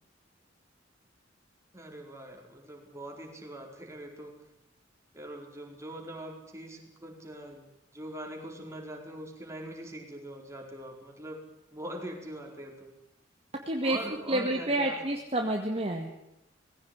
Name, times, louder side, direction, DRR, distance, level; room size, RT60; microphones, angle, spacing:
voice 1, 1.7-4.3 5.1-7.7 7.9-11.4 11.7-12.9 13.8-15.1, right 1 dB, 15° right, 1 dB, 4.6 m, -42 dB
voice 2, 13.7-14.0 14.3-16.1, right 1 dB, 35° right, 1 dB, 2.1 m, -29 dB
20.0 x 16.5 x 9.7 m, 0.86 s
head